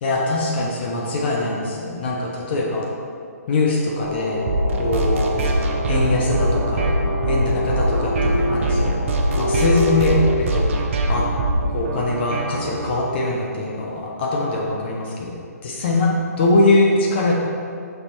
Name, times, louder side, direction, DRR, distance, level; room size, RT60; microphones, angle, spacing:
voice 1, 0.0-2.8 3.5-4.5 4.7-5.4 5.9-6.9 7.3-8.9 9.4-10.7 11.1-11.3 11.7-15.3 15.6-17.3, left 2 dB, 40° left, -2 dB, 0.7 m, -22 dB
sound 1, 4.0-10.4, left 3 dB, 90° left, 0.9 m, -27 dB
sound 2, 4.5-12.9, right 2 dB, 50° right, 0.7 m, -22 dB
5.6 x 3.9 x 4.4 m, 2.4 s
hypercardioid pair, 150°, 9 cm